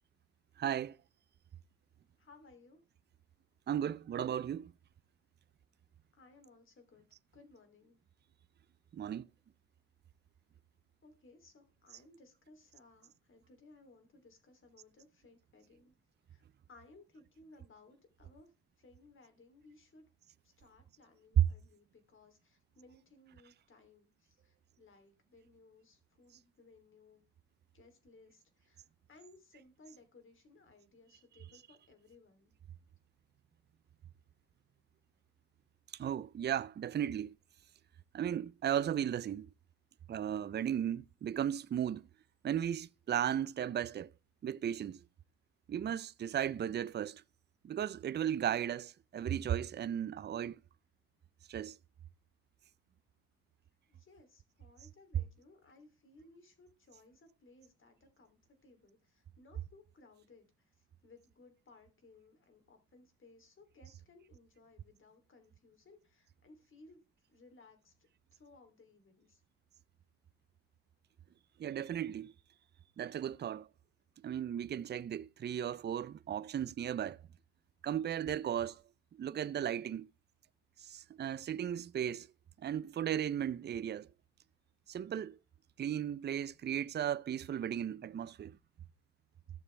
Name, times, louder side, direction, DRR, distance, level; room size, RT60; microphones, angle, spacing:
voice 1, 0.6-1.0 3.7-4.7 8.9-9.2 21.4-21.5 35.9-37.3 38.1-39.5 40.1-42.1 42.4-44.1 44.4-45.0 45.7-47.2 47.6-50.6 51.5-51.8 71.6-72.3 73.0-73.7 74.2-77.2 77.8-78.8 79.1-80.1 80.8-82.3 82.6-84.1 84.9-85.4 85.8-88.6, right 10 dB, 35° right, 0.5 m, -35 dB
voice 2, 2.2-2.8 6.1-7.1 7.3-8.0 11.0-15.9 16.3-18.5 18.8-20.0 20.4-27.2 27.7-32.5 53.9-67.0 67.3-67.9 68.3-69.4, left 3 dB, 40° left, 3.1 m, -61 dB
15.0 x 6.8 x 3.3 m
cardioid pair, 90°, 30 cm